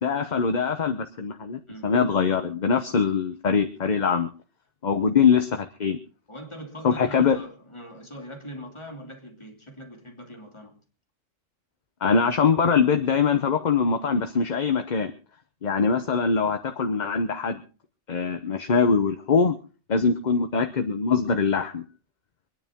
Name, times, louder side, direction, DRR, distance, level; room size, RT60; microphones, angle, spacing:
voice 1, 0.0-4.3 4.8-6.0 6.8-7.4 12.0-15.1 15.6-17.6 18.1-19.6 19.9-21.8, left 5 dB, 40° left, 0.9 m, -23 dB
voice 2, 6.3-10.8, equal, 20° left, 2.9 m, -42 dB
25.5 x 10.0 x 3.7 m
omnidirectional pair, 1.3 m